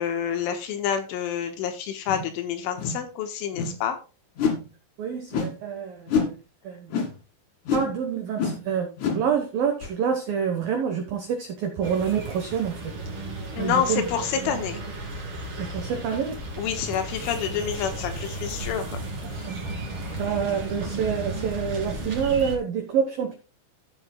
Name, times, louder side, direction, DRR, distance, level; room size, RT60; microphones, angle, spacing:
voice 1, 0.0-4.0 13.6-14.8 16.6-19.0 19.3-19.5, left 8 dB, 75° left, 3.5 m, -28 dB
sound 1, 2.1-2.3 2.8-3.0 3.5-3.8 4.4-4.7 5.3-5.6 6.1-6.3 6.9-7.2 7.7-7.9 8.4-8.6 9.0-9.3 9.8-9.9, left 5 dB, 50° left, 2.9 m, -26 dB
voice 2, 5.0-6.4 6.6-6.9 7.7-12.9 13.6-14.0 14.5-14.6 15.6-16.4 19.5-19.7 20.2-23.4, right 7 dB, 85° right, 2.0 m, -27 dB
sound 2, 11.8-22.6, right 2 dB, 35° right, 2.4 m, -34 dB
15.5 x 7.3 x 2.3 m
omnidirectional pair, 6.0 m